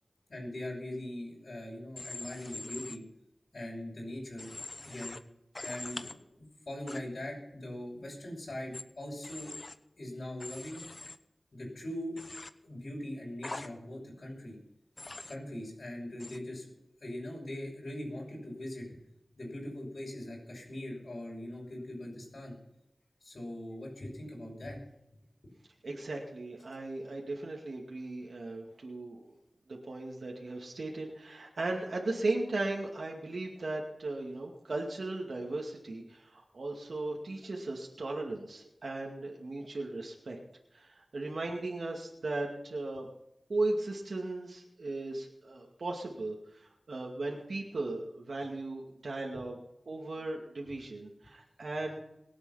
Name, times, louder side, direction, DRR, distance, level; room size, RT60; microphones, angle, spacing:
voice 1, 0.3-3.0 3.5-4.5 4.8-5.2 5.6-9.5 10.0-10.8 11.5-12.2 12.6-14.5 15.3-16.7 17.0-19.0 19.3-22.5 23.2-24.8, left 1 dB, 65° left, -4 dB, 6.2 m, -41 dB
Human voice / Train, 2.0-3.0 4.4-5.2 5.5-6.1 6.9-7.0 8.7-8.8 9.2-9.7 10.4-11.2 12.2-12.5 13.4-13.7 15.0-15.4 16.2-16.4, left 2 dB, 45° left, 0.9 m, -43 dB
voice 2, 25.8-29.3 29.7-40.4 40.7-43.1 43.5-49.6 49.9-52.0, right 2 dB, 85° right, -1 dB, 2.3 m, -37 dB
22.0 x 8.3 x 5.8 m, 0.84 s
wide cardioid pair, 70°, 0 cm